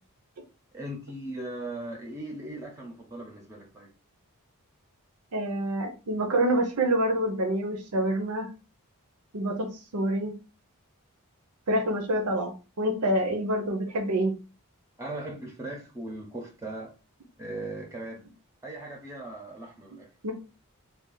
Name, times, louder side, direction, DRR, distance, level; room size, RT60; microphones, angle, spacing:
voice 1, 0.7-3.9 15.0-16.9 17.4-18.2 18.6-20.1, right 1 dB, 15° right, 0.6 m, -38 dB
voice 2, 5.3-8.5 9.3-10.4 11.7-14.3 20.2-20.3, right 1 dB, 80° right, 0.7 m, -27 dB
3.4 x 2.3 x 3.8 m
head